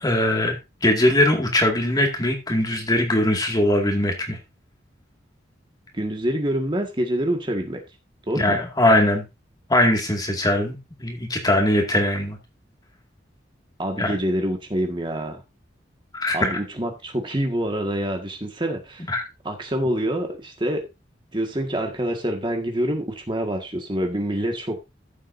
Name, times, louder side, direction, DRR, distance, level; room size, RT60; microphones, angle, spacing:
voice 1, 0.0-4.4 8.3-9.3 9.7-12.4 14.0-14.1 16.1-16.6 19.1-19.2, left 1 dB, 20° left, 3 dB, 2.1 m, -21 dB
voice 2, 5.9-7.8 8.3-8.6 13.8-15.4 16.3-19.1 19.4-20.9 21.3-24.8, right 1 dB, 25° right, 3 dB, 1.7 m, -26 dB
14.0 x 7.6 x 2.7 m, 0.24 s
head